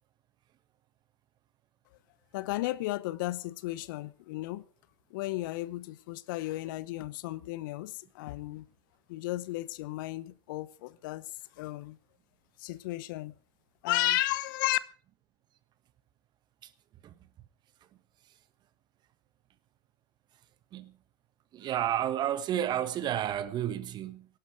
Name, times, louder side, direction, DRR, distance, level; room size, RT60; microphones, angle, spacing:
voice 1, 2.3-4.6 5.1-8.7 9.1-11.2 11.6-12.0 12.6-13.3 13.8-14.8, left 17 dB, 60° left, 0.8 m, -33 dB
voice 2, 21.5-24.3, right 11 dB, 35° right, 1.3 m, -31 dB
17.5 x 11.5 x 4.9 m
hypercardioid pair, 100°, 12 cm